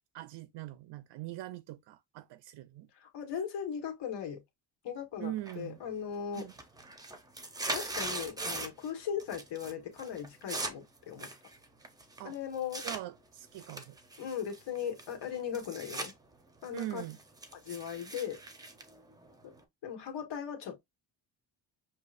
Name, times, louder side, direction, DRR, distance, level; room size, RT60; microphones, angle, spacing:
voice 1, 0.1-2.9 5.2-5.8 6.3-6.5 12.2-12.4 12.8-14.0 16.7-17.2, right 14 dB, 65° right, 0.5 m, -42 dB
voice 2, 2.9-4.4 4.8-6.5 7.7-11.3 12.2-12.8 14.2-16.1 16.6-17.0 17.6-18.4 19.4-19.5 19.8-20.8, left 8 dB, 65° left, 1.6 m, -38 dB
sound 1, 5.5-5.9 6.2-8.9 9.2-9.7 10.0-13.0 13.5-16.1 16.5-19.6, right 2 dB, 10° right, 0.7 m, -40 dB
6.5 x 2.9 x 2.5 m
cardioid pair, 165°, 45 cm